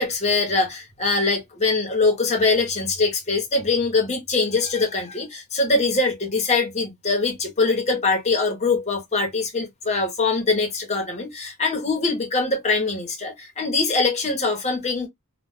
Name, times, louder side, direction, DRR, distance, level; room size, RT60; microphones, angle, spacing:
voice 1, 0.0-15.1, left 3 dB, 30° left, 0.9 m, -23 dB
2.2 x 2.2 x 3.4 m
head